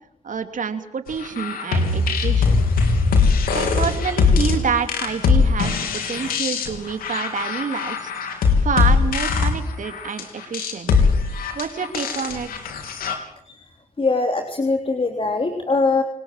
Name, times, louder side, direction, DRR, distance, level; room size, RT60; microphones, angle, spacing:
voice 1, 0.2-2.6 3.5-10.9 11.2-12.7, right 6 dB, 60° right, 8 dB, 3.3 m, -28 dB
sound 1, 1.2-13.1, left 4 dB, 85° left, 3.7 m, -20 dB
voice 2, 14.0-16.0, left 3 dB, 40° left, 4 dB, 3.4 m, -21 dB
28.0 x 19.5 x 7.7 m, 0.74 s
supercardioid pair, 45°, 15 cm